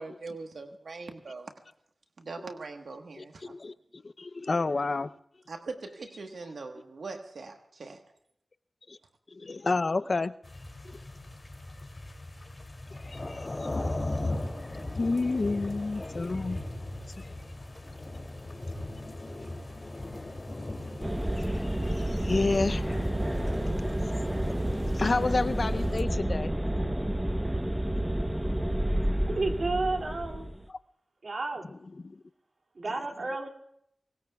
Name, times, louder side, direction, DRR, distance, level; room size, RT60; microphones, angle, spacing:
voice 1, 0.0-1.5 2.2-3.5 5.5-8.0, right 3 dB, 85° right, 5 dB, 1.3 m, -41 dB
voice 2, 3.2-5.1 8.9-9.0 9.3-10.3 13.0-13.5 15.0-16.6 17.2-17.3 21.4-23.1 24.9-26.5 32.0-32.2, left 3 dB, 60° left, 13 dB, 0.6 m, -30 dB
sound 1, 10.4-26.0, left 2 dB, 45° left, 2.7 m, -38 dB
sound 2, 21.0-30.6, right 1 dB, 15° right, 0.9 m, -30 dB
Bowed string instrument, 21.8-27.3, equal, 40° right, 2.9 m, -49 dB
voice 3, 29.3-30.5 31.2-31.7 32.7-33.5, right 3 dB, 70° right, 2 dB, 2.6 m, -31 dB
24.5 x 19.5 x 2.3 m, 0.73 s
cardioid pair, 45°, 0 cm